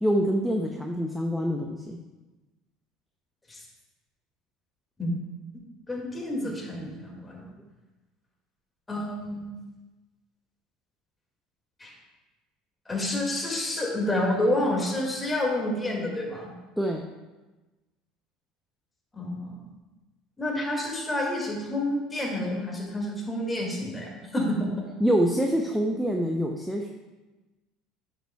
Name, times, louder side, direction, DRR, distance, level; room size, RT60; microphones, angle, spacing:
voice 1, 0.0-2.0 16.8-17.0 25.0-26.9, equal, ahead, 1 dB, 0.6 m, -25 dB
voice 2, 5.9-7.5 8.9-9.5 11.8-11.9 12.9-16.5 19.1-19.6 20.4-24.7, left 1 dB, 15° left, -2 dB, 2.1 m, -29 dB
8.9 x 6.8 x 2.3 m, 1.2 s
supercardioid pair, 105°, 0 cm